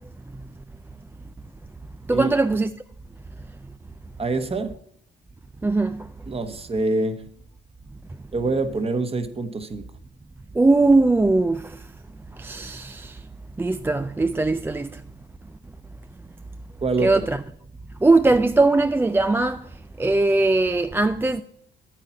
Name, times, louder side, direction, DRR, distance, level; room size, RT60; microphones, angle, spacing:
voice 1, 2.1-2.7 5.6-6.0 10.6-11.7 12.4-13.2 13.6-14.9 17.0-17.4 18.0-19.6 20.0-21.4, right 2 dB, 10° right, 0.3 m, -20 dB
voice 2, 4.2-4.7 6.3-7.2 8.3-9.8 16.8-17.1, right 3 dB, 30° right, 1.2 m, -25 dB
8.9 x 8.8 x 4.3 m
cardioid pair, 105°, 20 cm